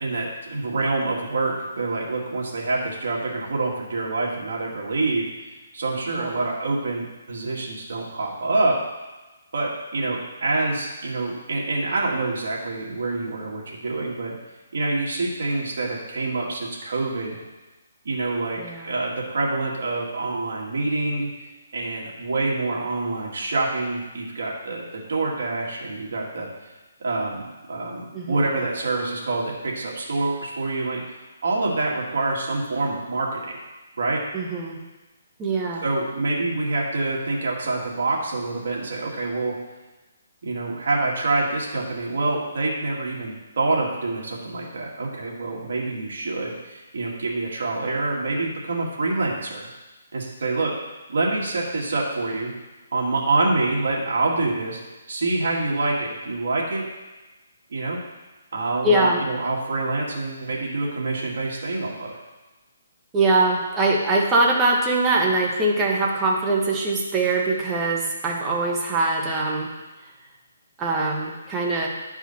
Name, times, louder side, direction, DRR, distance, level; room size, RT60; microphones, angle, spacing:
voice 1, 0.0-5.3 5.7-8.8 9.5-14.3 14.7-17.4 18.0-21.3 21.7-26.5 27.0-31.0 31.4-33.6 34.0-34.2 35.8-39.5 40.4-49.7 50.1-50.7 51.1-52.5 52.9-54.8 55.1-56.8 57.7-58.0 58.5-62.2, right 2 dB, 65° right, -3 dB, 2.0 m, -26 dB
voice 2, 18.6-18.9 28.1-28.5 34.3-34.8 35.4-35.8 58.8-59.2 63.1-69.7 70.8-71.9, right 2 dB, 15° right, -2 dB, 1.0 m, -22 dB
9.9 x 4.8 x 4.1 m, 1.1 s
hypercardioid pair, 165°, 0 cm